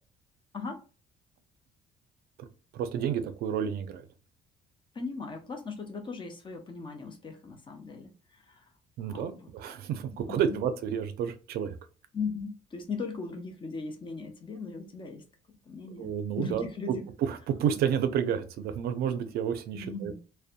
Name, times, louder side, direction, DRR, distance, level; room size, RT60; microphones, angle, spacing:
voice 1, 2.4-4.0 9.0-11.8 16.0-16.6 17.2-20.1, right 8 dB, 70° right, 0.4 m, -30 dB
voice 2, 4.9-8.6 9.1-9.5 10.1-10.6 12.1-15.2 15.7-17.0 19.7-20.2, left 4 dB, 30° left, 0.5 m, -38 dB
2.6 x 2.1 x 2.4 m
cardioid pair, 110°, 17 cm